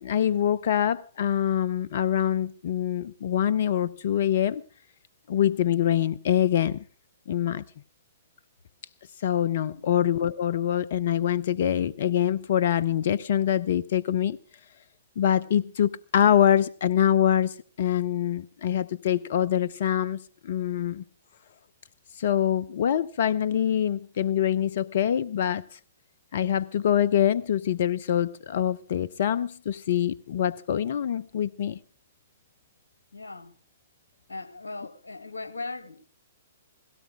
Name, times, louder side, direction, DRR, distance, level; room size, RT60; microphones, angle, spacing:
voice 1, 0.0-4.6 5.3-6.8 7.3-7.6 9.2-14.4 15.2-21.0 22.2-25.8 26.3-31.8, left 10 dB, 55° left, 0.7 m, -25 dB
voice 2, 33.1-33.5 34.3-36.0, left 3 dB, 80° left, 2.1 m, -38 dB
17.5 x 17.0 x 3.4 m
figure-of-eight pair, 120°, 0 cm